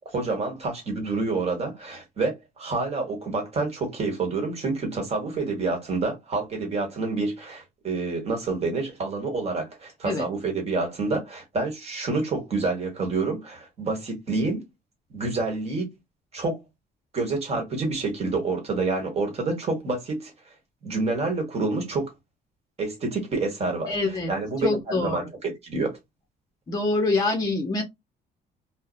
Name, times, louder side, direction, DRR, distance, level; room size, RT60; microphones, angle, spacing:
voice 1, 0.1-14.6 15.1-15.9 16.3-16.6 17.1-20.3 20.8-22.1 22.8-24.0 24.3-26.0, right 3 dB, 40° right, 1.2 m, -28 dB
voice 2, 23.9-24.3 24.6-25.3 26.7-27.8, left 2 dB, 25° left, 0.6 m, -25 dB
2.6 x 2.0 x 2.4 m
cardioid pair, 110°, 17 cm